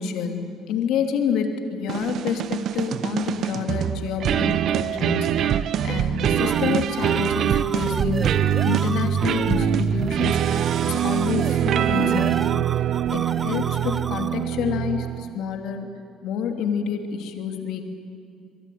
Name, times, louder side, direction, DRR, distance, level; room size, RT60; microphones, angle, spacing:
voice 1, 0.0-8.3 8.7-12.8 13.1-15.9 16.2-17.8, left 7 dB, 70° left, 5 dB, 3.0 m, -28 dB
sound 1, 1.9-15.4, right 10 dB, 60° right, 1.1 m, -24 dB
sound 2, 6.1-14.6, right 4 dB, 35° right, 0.5 m, -34 dB
24.0 x 22.5 x 9.5 m, 2.5 s
hypercardioid pair, 60°, 0 cm